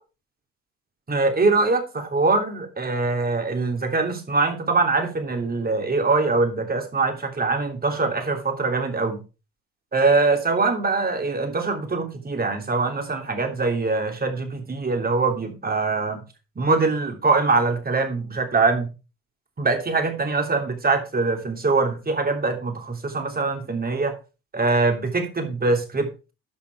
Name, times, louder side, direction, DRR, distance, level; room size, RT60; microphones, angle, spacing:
voice 1, 1.1-9.2 9.9-16.2 16.6-18.9 19.6-24.2 24.5-26.1, right 3 dB, 25° right, 3.2 m, -23 dB
11.0 x 6.0 x 4.7 m
supercardioid pair, 85°, 34 cm